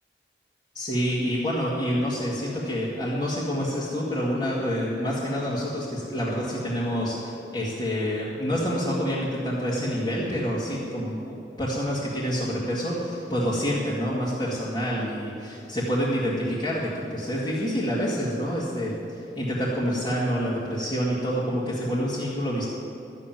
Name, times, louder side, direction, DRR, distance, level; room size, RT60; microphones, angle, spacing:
voice 1, 0.7-22.7, equal, 25° left, -9 dB, 2.0 m, -27 dB
12.5 x 7.5 x 9.2 m, 2.8 s
head